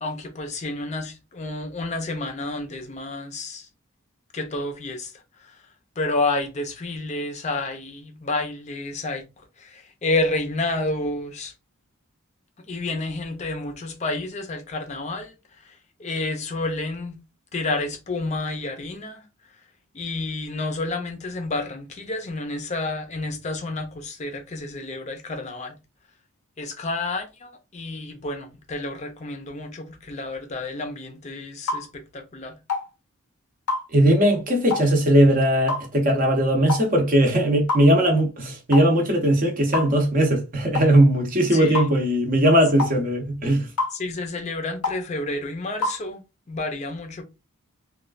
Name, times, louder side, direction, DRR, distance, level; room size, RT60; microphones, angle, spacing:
voice 1, 0.0-3.7 4.3-5.7 6.0-9.2 9.6-11.5 12.7-17.2 17.5-19.2 19.9-25.8 26.6-32.5 41.5-41.9 43.9-46.2 46.5-47.2, left 2 dB, 30° left, 0.5 m, -30 dB
sound 1, 31.7-31.9 32.7-32.9 33.7-33.9 34.7-34.9 35.7-35.9 36.7-36.9 37.7-37.9 38.7-38.9 39.7-39.9 40.7-40.9 41.7-41.9 42.8-43.0 43.8-44.0 44.8-45.0 45.8-46.0, left 3 dB, 85° left, 0.6 m, -26 dB
voice 2, 33.9-43.7, right 1 dB, 40° right, 0.7 m, -19 dB
3.1 x 2.3 x 2.4 m
head